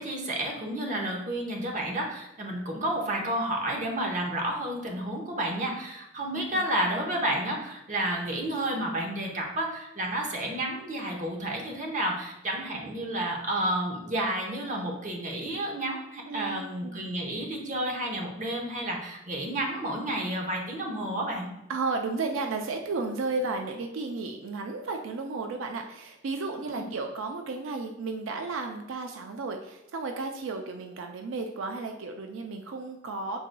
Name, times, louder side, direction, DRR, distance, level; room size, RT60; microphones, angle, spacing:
voice 1, 0.0-21.5 26.6-26.9, right 1 dB, 40° right, 1 dB, 0.8 m, -31 dB
voice 2, 16.3-17.1 21.7-33.4, right 3 dB, 80° right, 4 dB, 0.4 m, -33 dB
6.2 x 3.8 x 2.2 m, 0.88 s
head